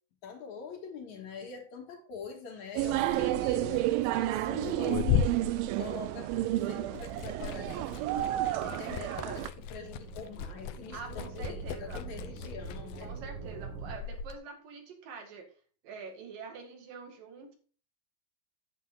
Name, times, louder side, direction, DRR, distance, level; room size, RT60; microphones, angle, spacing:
voice 1, 0.2-5.0 5.6-8.3 8.6-13.1, left 5 dB, 60° left, 3 dB, 2.7 m, -44 dB
Liquid, 2.8-6.5 6.8-14.4, left 9 dB, 80° left, 2.4 m, -36 dB
sound 1, 2.8-9.5, right 15 dB, 85° right, 2.4 m, -31 dB
sound 2, 8.3-14.0, right 4 dB, 45° right, 2.0 m, -45 dB
voice 2, 8.5-9.3 10.9-12.0 13.0-15.5 15.8-17.6, right 5 dB, 70° right, 4 dB, 3.6 m, -45 dB
9.8 x 8.2 x 3.7 m, 0.39 s
omnidirectional pair, 4.1 m